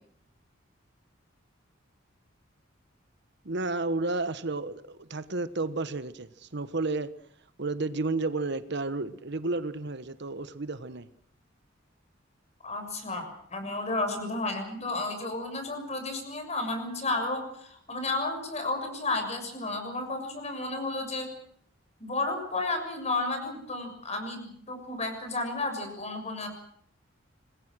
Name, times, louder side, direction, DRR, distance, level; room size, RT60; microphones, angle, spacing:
voice 1, 3.4-7.1 7.6-11.1, right 3 dB, 60° right, 12 dB, 1.3 m, -32 dB
voice 2, 12.6-21.3 22.0-26.5, left 2 dB, 35° left, 6 dB, 6.8 m, -32 dB
26.5 x 20.5 x 6.3 m, 0.66 s
head